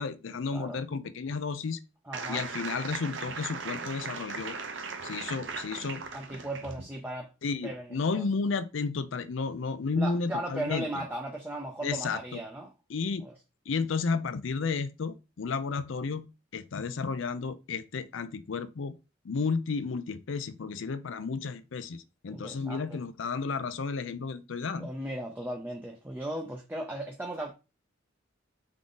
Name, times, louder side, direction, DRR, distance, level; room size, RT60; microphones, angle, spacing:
voice 1, 0.0-1.8 2.3-4.6 5.0-6.0 7.4-11.0 11.8-12.4 12.9-13.2 13.7-16.2 16.5-18.9 19.2-24.9, left 4 dB, 75° left, 0.5 m, -32 dB
voice 2, 2.1-2.4 6.1-7.3 7.6-8.2 10.0-12.7 13.2-13.3 22.3-23.0 24.8-27.5, right 1 dB, 10° right, 0.5 m, -37 dB
sound 1, 2.1-6.8, right 5 dB, 70° right, 0.8 m, -38 dB
3.7 x 3.7 x 3.8 m
head